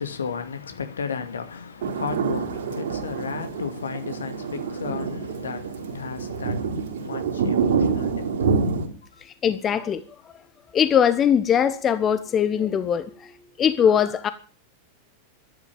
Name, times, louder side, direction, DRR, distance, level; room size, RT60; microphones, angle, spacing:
voice 1, 0.0-8.7 9.1-9.2, left 6 dB, 70° left, 2.3 m, -34 dB
sound 1, 1.8-8.9, right 5 dB, 60° right, 4.1 m, -27 dB
voice 2, 9.2-10.0 10.7-13.3 13.6-14.3, left 8 dB, 25° left, 1.0 m, -21 dB
12.5 x 11.5 x 8.7 m
figure-of-eight pair, 90°, 0 cm